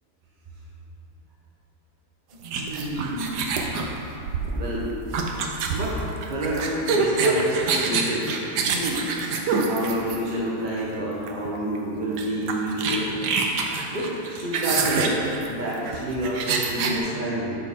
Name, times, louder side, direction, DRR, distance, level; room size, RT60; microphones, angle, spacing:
voice 1, 2.4-3.5 4.5-4.9 5.6-8.3 8.6-9.1 9.4-13.2 13.9-17.5, right 1 dB, 35° right, -6 dB, 1.1 m, -29 dB
sound 1, 2.4-10.5 11.3-11.5 11.7-11.8 12.2-17.0, right 4 dB, 80° right, 1.3 m, -26 dB
10.5 x 6.3 x 3.7 m, 2.9 s
omnidirectional pair, 1.7 m